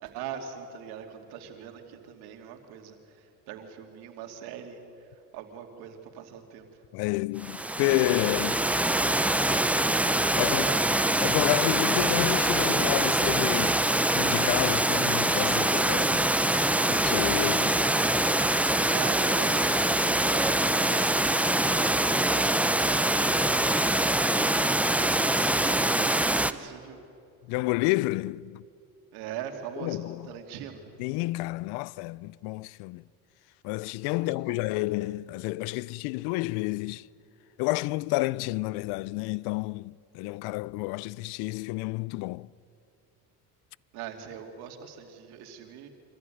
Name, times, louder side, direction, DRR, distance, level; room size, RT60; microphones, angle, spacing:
voice 1, 0.0-5.1 5.3-6.7 8.4-8.7 10.3-10.8 18.9-19.6 24.4-27.0 29.1-30.8 34.2-34.6 43.9-45.9, right 8 dB, 75° right, 2.8 m, -42 dB
voice 2, 6.9-8.5 10.4-10.6 11.2-13.8 14.1-16.3 16.9-17.8 27.5-28.6 29.8-30.3 31.0-33.0 33.6-37.1 37.6-42.5, left 20 dB, 75° left, 0.5 m, -30 dB
Water, 7.4-26.5, right 1 dB, 5° right, 0.6 m, -24 dB
25.0 x 14.5 x 9.2 m
supercardioid pair, 95°, 39 cm